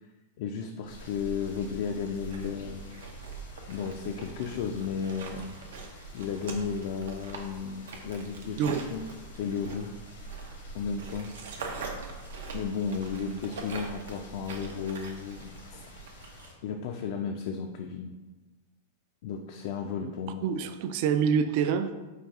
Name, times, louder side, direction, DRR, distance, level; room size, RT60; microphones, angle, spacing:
voice 1, 0.4-2.8 3.7-5.5 6.1-9.1 9.4-9.9 10.7-11.3 12.5-15.9 16.6-18.1 19.2-20.5, left 6 dB, 60° left, 4 dB, 0.3 m, -34 dB
sound 1, 0.9-16.5, left 3 dB, 90° left, 1.0 m, -51 dB
sound 2, 0.9-16.5, right 4 dB, 85° right, 0.6 m, -43 dB
voice 2, 20.4-21.9, right 7 dB, 55° right, 10 dB, 0.3 m, -26 dB
4.8 x 2.3 x 3.5 m, 1.2 s
supercardioid pair, 135°, 0 cm